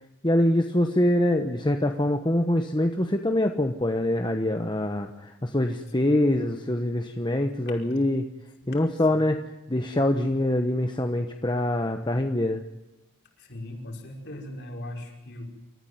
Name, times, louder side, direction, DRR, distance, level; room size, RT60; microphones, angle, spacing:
voice 1, 0.2-8.3 8.7-9.4 9.7-12.6, left 1 dB, 20° left, 5 dB, 1.1 m, -24 dB
voice 2, 6.0-6.3 7.7-7.8 8.6-9.3 13.4-15.4, left 1 dB, 50° left, 1 dB, 5.3 m, -40 dB
28.5 x 14.5 x 9.4 m, 0.93 s
head